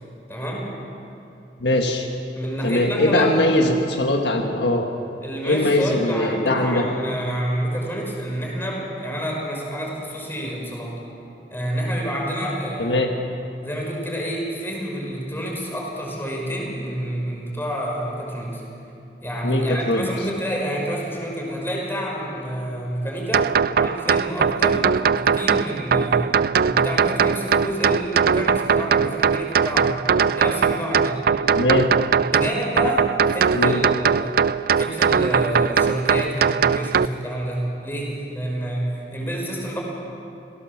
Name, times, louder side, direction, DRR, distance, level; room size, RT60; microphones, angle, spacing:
voice 1, 0.3-0.7 2.3-3.5 5.2-11.0 11.5-13.0 13.6-18.6 19.2-26.3 26.7-30.0 30.3-31.3 32.2-34.4 34.7-39.8, equal, 15° left, -2 dB, 5.4 m, -28 dB
voice 2, 1.6-2.1 2.6-4.9 5.4-6.8 12.8-13.1 19.4-20.1 31.5-31.9 33.5-33.8, left 1 dB, 75° left, 3 dB, 1.6 m, -21 dB
sound 1, 23.3-37.1, right 6 dB, 60° right, 0.4 m, -20 dB
27.0 x 18.0 x 7.3 m, 2.7 s
head